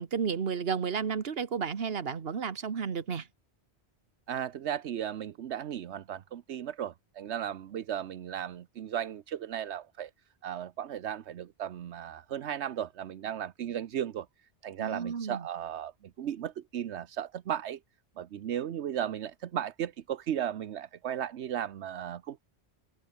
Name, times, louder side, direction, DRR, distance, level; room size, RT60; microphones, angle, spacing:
voice 1, 0.0-3.3 14.8-15.5, right 6 dB, 60° right, 1.5 m, -32 dB
voice 2, 4.3-10.1 10.4-14.3 14.6-15.9 16.2-17.8 18.2-22.4, right 10 dB, 80° right, 1.1 m, -35 dB
open air
omnidirectional pair, 1.1 m